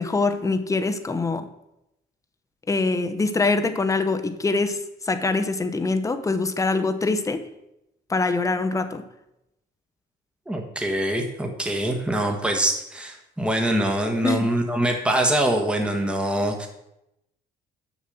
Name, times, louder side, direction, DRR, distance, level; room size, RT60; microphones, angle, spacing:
voice 1, 0.0-1.5 2.7-7.5 8.1-9.0 14.2-14.5, left 3 dB, 20° left, 9 dB, 0.9 m, -24 dB
voice 2, 10.5-16.7, right 1 dB, 5° right, 3 dB, 1.4 m, -24 dB
7.0 x 6.4 x 7.8 m, 0.86 s
cardioid pair, 110°, 17 cm